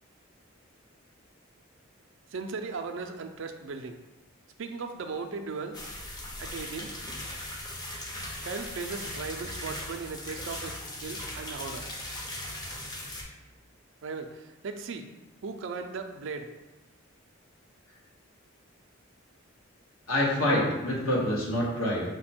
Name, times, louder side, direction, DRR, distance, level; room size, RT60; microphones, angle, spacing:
voice 1, 2.3-4.0 4.6-5.8 6.4-6.9 8.4-11.9 14.0-15.1 15.4-16.5, right 4 dB, 60° right, 6 dB, 0.4 m, -37 dB
sound 1, 5.7-13.2, left 1 dB, 20° left, 0.5 m, -39 dB
voice 2, 20.1-22.0, left 1 dB, 85° left, -4 dB, 1.3 m, -26 dB
5.1 x 2.2 x 4.2 m, 1.1 s
head